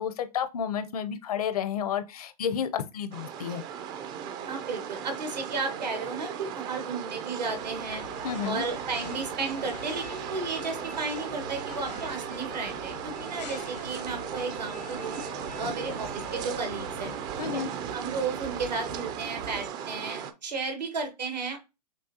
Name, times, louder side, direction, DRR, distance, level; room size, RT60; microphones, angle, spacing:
voice 1, 0.0-3.6 8.2-8.7 17.4-17.7, left 8 dB, 65° left, 0.7 m, -31 dB
sound 1, 3.1-20.3, right 8 dB, 20° right, 0.3 m, -37 dB
voice 2, 4.5-8.0 8.4-15.2 15.6-17.1 17.5-17.6 17.9-21.6, right 4 dB, 85° right, 1.4 m, -34 dB
sound 2, 7.5-17.2, left 5 dB, 80° left, 1.0 m, -45 dB
sound 3, 11.3-11.9 14.1-15.1 15.5-19.7, right 7 dB, 70° right, 0.6 m, -48 dB
6.2 x 2.3 x 2.7 m
hypercardioid pair, 125°, 21 cm